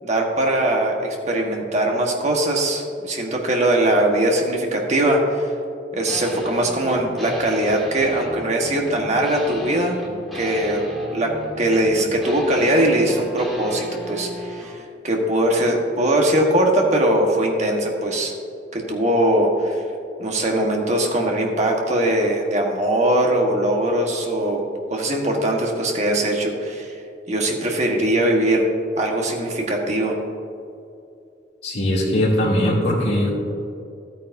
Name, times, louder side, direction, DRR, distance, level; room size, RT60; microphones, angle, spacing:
voice 1, 0.0-5.5 5.9-9.9 10.3-10.8 11.1-18.3 18.7-19.8 20.2-27.0 27.3-28.6 29.0-30.2, right 1 dB, 40° right, 0 dB, 1.3 m, -21 dB
sound 1, 6.1-14.8, equal, ahead, 1.5 m, -34 dB
voice 2, 31.6-33.3, left 1 dB, 70° left, -9 dB, 2.5 m, -20 dB
13.5 x 9.0 x 2.7 m, 2.5 s
head